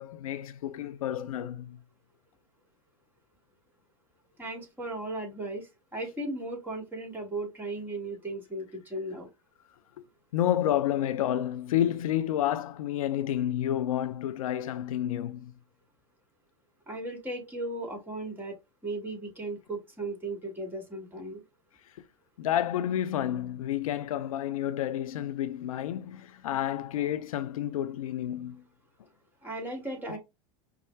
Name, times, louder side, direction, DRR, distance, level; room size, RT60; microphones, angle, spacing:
voice 1, 0.0-1.8 10.0-10.1 10.3-15.5 22.4-28.6, left 11 dB, 90° left, 0.4 m, -30 dB
voice 2, 4.4-9.3 16.9-18.5 18.8-21.4 29.4-30.2, right 2 dB, 10° right, 2.1 m, -36 dB
5.4 x 2.4 x 3.3 m
hypercardioid pair, 105°, 17 cm